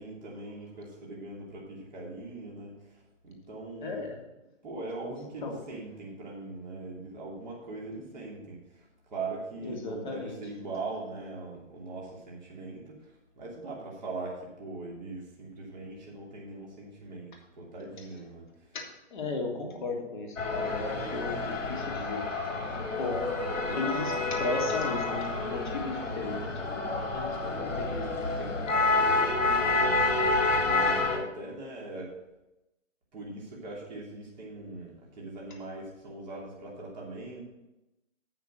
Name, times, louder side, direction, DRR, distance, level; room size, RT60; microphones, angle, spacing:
voice 1, 0.0-4.0 4.6-18.5 19.7-19.8 29.4-30.0 30.2-30.3 30.6-32.1 33.1-37.4, right 3 dB, ahead, -27 dB, 0.5 m, -41 dB
voice 2, 3.8-4.2 5.0-5.6 9.6-10.4 18.7-28.7, left 3 dB, 40° left, 1 dB, 1.9 m, -36 dB
sound 1, 20.4-31.2, left 3 dB, 85° left, 2.7 m, -29 dB
8.7 x 5.8 x 6.3 m, 0.95 s
hypercardioid pair, 170°, 37 cm